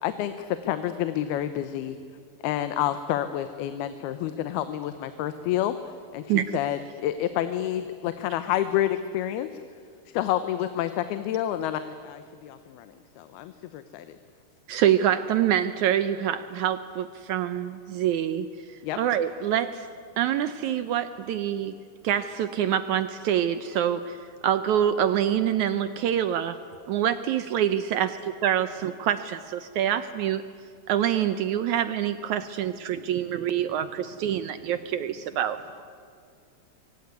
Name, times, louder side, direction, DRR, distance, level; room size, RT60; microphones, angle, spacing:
voice 1, 0.0-2.0 2.4-5.8 6.1-9.5 10.1-14.2 18.8-19.0 20.6-20.7, left 12 dB, 85° left, 11 dB, 2.9 m, -29 dB
voice 2, 14.7-19.9 20.2-21.7 22.0-24.2 24.4-26.5 26.9-28.1 28.4-30.4 30.9-35.6, right 10 dB, 85° right, 12 dB, 1.7 m, -26 dB
voice 3, 32.0-35.4 35.8-35.9, right 4 dB, 65° right, 4 dB, 3.7 m, -59 dB
25.0 x 24.5 x 9.5 m, 2.2 s
omnidirectional pair, 4.4 m